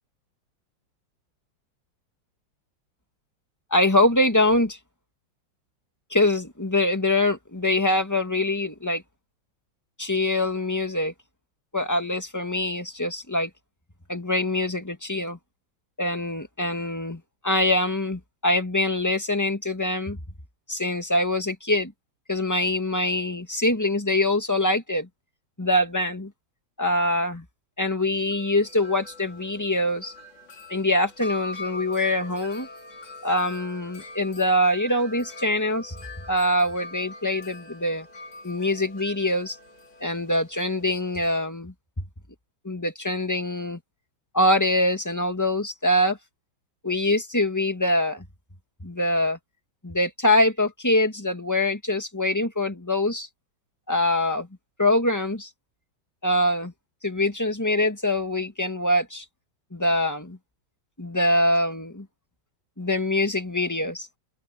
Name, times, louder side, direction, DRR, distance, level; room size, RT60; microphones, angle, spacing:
voice 1, 3.7-4.8 6.1-9.0 10.0-11.1 11.7-13.5 14.1-15.4 16.0-20.2 20.7-21.9 22.3-25.1 25.6-26.3 26.8-27.4 27.8-30.1 30.7-32.7 33.2-36.0 36.3-38.1 38.4-39.6 40.0-42.0 42.6-43.8 44.3-46.2 46.8-48.2 48.8-49.4 49.8-53.3 53.9-54.5 54.8-55.5 56.2-56.7 57.0-59.2 59.7-60.4 61.0-62.1 62.8-64.1, left 1 dB, 10° left, 2.0 m, -24 dB
Wind chime, 28.0-41.4, left 1 dB, 70° left, 4.9 m, -42 dB
omnidirectional pair, 2.0 m